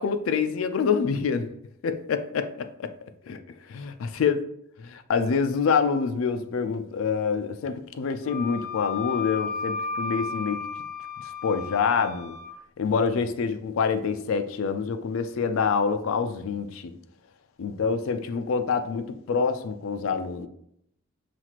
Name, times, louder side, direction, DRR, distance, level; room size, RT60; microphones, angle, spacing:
voice 1, 0.0-1.5 1.8-2.9 3.3-3.4 3.7-4.4 5.1-10.6 11.4-12.3 12.8-16.9 17.6-20.5, left 5 dB, 70° left, 8 dB, 0.4 m, -26 dB
Wind instrument woodwind instrument, 8.2-12.5, left 5 dB, 20° left, 1.3 m, -33 dB
5.8 x 2.4 x 2.9 m, 0.73 s
head